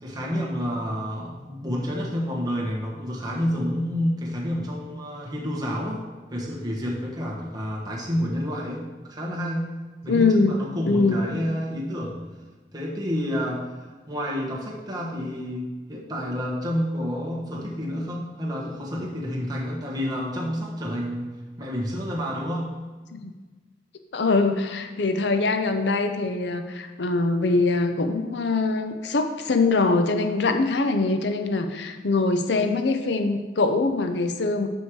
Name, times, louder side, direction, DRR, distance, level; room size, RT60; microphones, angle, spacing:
voice 1, 0.0-6.0 6.3-9.7 10.0-12.2 12.7-13.7 14.1-21.3 21.6-22.7, equal, 25° right, -3 dB, 1.3 m, -29 dB
voice 2, 10.1-10.6 10.9-11.2 23.1-23.3 24.1-34.7, left 3 dB, 75° left, 6 dB, 0.6 m, -23 dB
6.3 x 5.3 x 4.7 m, 1.3 s
head